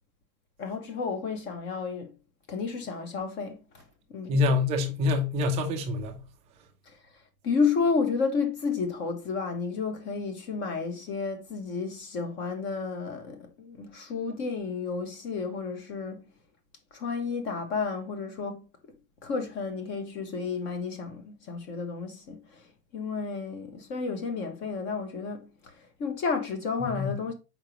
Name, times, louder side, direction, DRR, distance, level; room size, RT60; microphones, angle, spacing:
voice 1, 0.6-2.1 2.5-3.8 4.1-4.4 6.9-7.0 7.4-16.2 16.9-18.7 19.2-22.7 22.9-27.3, left 5 dB, 25° left, 1.0 m, -31 dB
voice 2, 4.3-6.2 26.8-27.1, left 3 dB, 15° right, 0.5 m, -26 dB
6.4 x 5.1 x 3.0 m
supercardioid pair, 155°, 46 cm